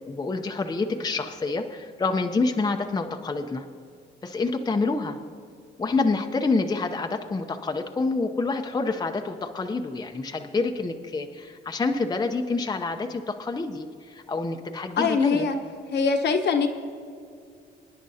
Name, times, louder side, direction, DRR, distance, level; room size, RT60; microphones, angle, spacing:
voice 1, 0.1-3.6 4.2-5.2 5.8-15.5, left 3 dB, 20° left, 4 dB, 0.7 m, -27 dB
voice 2, 15.0-15.6 15.9-16.7, left 5 dB, 60° left, 4 dB, 1.1 m, -22 dB
24.5 x 10.0 x 2.8 m, 2.3 s
cardioid pair, 90°, 20 cm